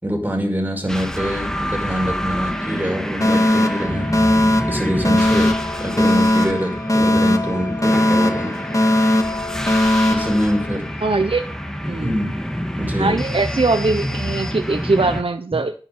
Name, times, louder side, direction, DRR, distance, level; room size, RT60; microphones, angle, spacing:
voice 1, 0.0-8.6 10.1-10.9 12.0-12.3 12.8-13.1, equal, 20° right, 2 dB, 5.8 m, -24 dB
sound 1, 0.9-15.2, equal, 5° left, 2.0 m, -28 dB
Alarm, 3.2-11.2, left 1 dB, 35° left, 1.7 m, -19 dB
voice 2, 11.0-11.5 11.9-12.1 12.9-15.7, right 3 dB, 80° right, 7 dB, 0.9 m, -21 dB
11.0 x 10.5 x 5.6 m, 0.40 s
wide cardioid pair, 45°, 9 cm